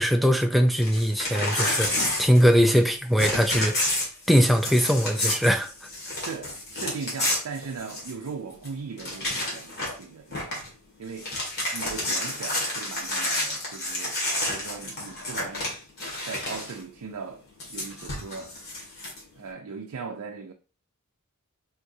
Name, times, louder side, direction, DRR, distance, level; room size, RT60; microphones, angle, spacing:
voice 1, 0.0-3.7 4.3-5.7, equal, ahead, 0.4 m, -21 dB
Crumpling crinkling / Tearing, 0.7-2.9 3.2-8.3 8.6-8.7 9.0-10.0 10.3-10.7 11.0-16.8 17.6-19.2, left 1 dB, 50° left, 1.8 m, -30 dB
voice 2, 6.1-10.6 11.0-11.3 11.7-14.2 14.5-15.7 16.2-18.6 19.3-20.5, right 5 dB, 75° right, 0.4 m, -38 dB
4.7 x 3.5 x 2.6 m
head